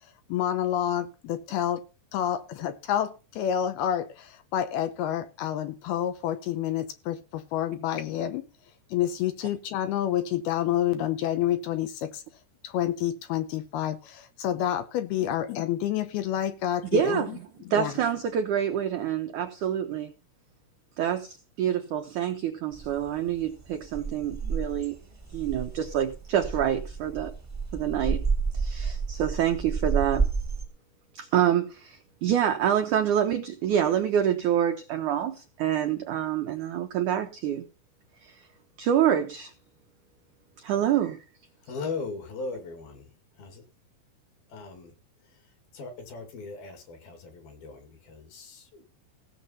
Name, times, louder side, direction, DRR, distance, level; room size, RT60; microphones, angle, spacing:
voice 1, 0.3-1.9 2.1-8.5 8.9-12.2 12.6-17.4 17.7-17.9, left 11 dB, 75° left, 2.6 m, -28 dB
voice 2, 16.9-17.4 17.7-20.1 21.0-25.0 25.3-27.3 27.7-28.2 28.5-30.3 31.1-37.6 38.2-38.3 38.8-39.5 40.6-41.2, right 9 dB, 80° right, 1.8 m, -27 dB
sound 1, 22.7-30.6, right 5 dB, 20° right, 0.4 m, -31 dB
voice 3, 41.6-43.1 43.4-43.6 44.5-44.9 45.7-48.8, left 4 dB, 60° left, 4.0 m, -38 dB
17.0 x 7.0 x 5.6 m
omnidirectional pair, 4.9 m